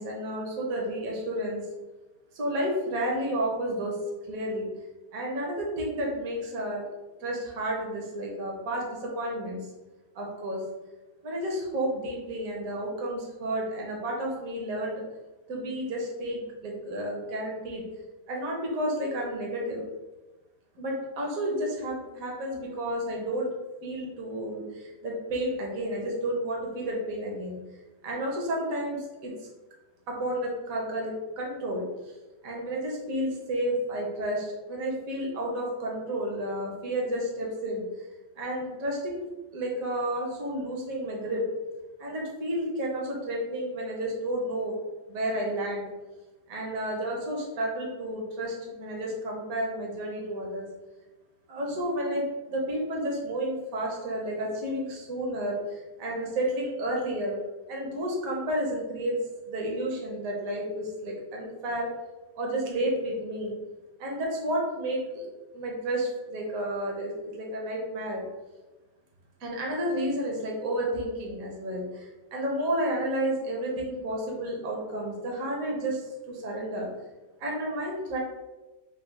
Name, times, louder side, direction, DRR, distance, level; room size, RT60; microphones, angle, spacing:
voice 1, 0.0-1.7 2.3-4.0 4.2-4.7 5.1-6.8 7.2-9.7 10.1-10.6 11.2-15.0 15.5-17.9 18.3-19.8 20.7-23.5 23.8-27.6 28.0-29.5 30.1-32.1 32.4-37.8 38.4-39.2 39.5-41.5 42.0-44.7 45.1-45.9 46.5-50.7 51.5-57.4 57.7-59.2 59.5-61.9 62.3-63.6 64.0-65.2 65.5-68.2 69.4-76.9 77.4-78.2, right 1 dB, 60° right, -2 dB, 1.3 m, -31 dB
3.8 x 2.3 x 4.6 m, 1.1 s
omnidirectional pair, 1.7 m